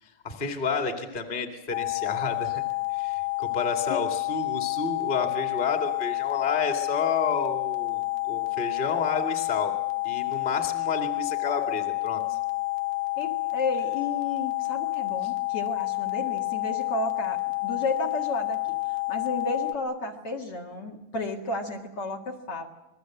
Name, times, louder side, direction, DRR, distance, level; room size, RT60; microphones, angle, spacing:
voice 1, 0.0-2.6 2.9-9.7 10.0-12.4 15.2-15.3, left 5 dB, 15° left, 5 dB, 2.0 m, -30 dB
sound 1, 1.7-19.7, left 23 dB, 65° left, 1.7 m, -29 dB
voice 2, 13.2-22.7, left 2 dB, 45° left, 1 dB, 2.6 m, -32 dB
27.0 x 21.0 x 7.9 m, 0.97 s
omnidirectional pair, 4.0 m